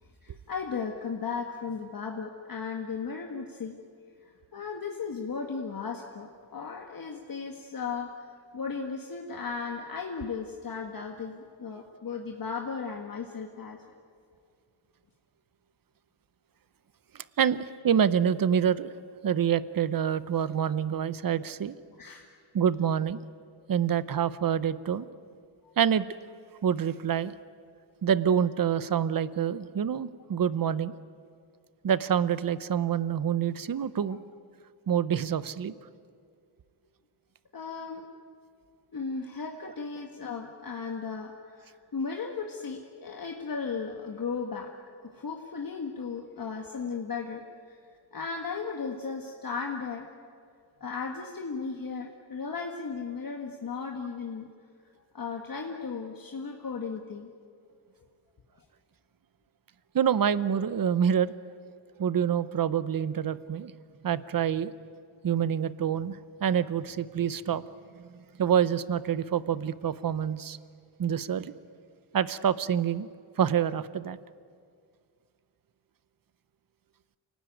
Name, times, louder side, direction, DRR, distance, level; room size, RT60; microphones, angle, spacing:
voice 1, 0.2-3.8 4.5-13.8 22.0-22.3 34.0-34.2 37.5-38.1 38.9-44.7 45.0-47.8 48.1-50.1 50.8-54.5 55.1-57.3, left 5 dB, 45° left, 2 dB, 1.7 m, -36 dB
voice 2, 17.4-18.9 19.2-21.7 22.5-23.2 23.7-25.1 25.8-26.0 26.6-27.3 28.0-30.9 31.8-34.2 34.9-35.7 59.9-61.3 62.0-63.7 64.0-64.7 65.2-67.7 68.4-70.6 71.0-71.5 72.1-73.1 73.4-74.2, right 8 dB, 45° right, 16 dB, 0.8 m, -26 dB
28.5 x 19.0 x 9.2 m, 2.2 s
wide cardioid pair, 150°, 47 cm